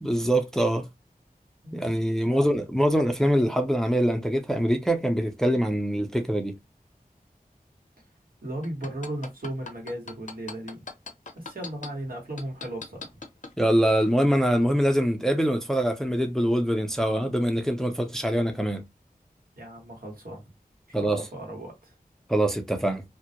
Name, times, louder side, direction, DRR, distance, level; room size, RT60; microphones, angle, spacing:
voice 1, 0.0-0.8 1.7-6.5 13.6-18.8 20.9-21.2 22.3-23.0, equal, 5° left, 0.4 m, -24 dB
voice 2, 8.4-10.8 11.3-13.2 19.6-20.4 21.0-21.9, right 1 dB, 70° right, 1.1 m, -36 dB
sound 1, 8.6-11.9 12.4-13.5 14.0-14.1, left 4 dB, 55° left, 0.5 m, -38 dB
2.2 x 2.0 x 2.8 m
wide cardioid pair, 45°, 15 cm